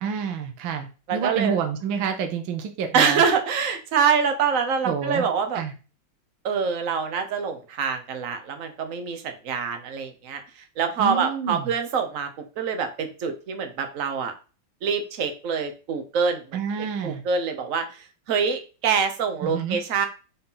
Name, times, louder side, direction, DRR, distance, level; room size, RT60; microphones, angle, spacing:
voice 1, 0.0-3.2 4.8-5.3 5.5-5.7 11.0-11.7 16.5-17.2 19.4-19.8, right 7 dB, 70° right, 5 dB, 1.6 m, -28 dB
voice 2, 1.1-1.5 2.9-5.6 6.4-12.3 12.6-14.3 14.8-16.6 17.0-20.1, right 6 dB, 50° right, 7 dB, 1.1 m, -25 dB
4.3 x 3.9 x 5.6 m, 0.33 s
omnidirectional pair, 2.3 m